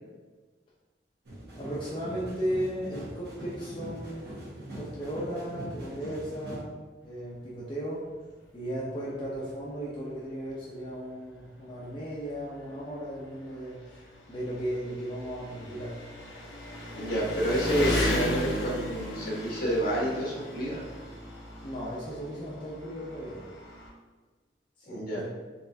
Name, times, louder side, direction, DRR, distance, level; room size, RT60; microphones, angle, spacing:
sound 1, 1.2-6.6, right 1 dB, 65° right, 1.4 m, -42 dB
voice 1, 1.5-4.4 4.7-6.8 7.0-8.1 8.5-14.0 14.3-16.0 21.6-23.4 24.9-25.3, equal, 30° left, -8 dB, 0.6 m, -36 dB
Engine, 9.3-9.4 9.8-9.9 10.9-11.0 11.2-23.9, left 1 dB, 80° left, 1.0 m, -36 dB
voice 2, 16.9-20.9 24.9-25.2, equal, 55° left, -4 dB, 1.3 m, -29 dB
4.1 x 3.3 x 2.7 m, 1.3 s
head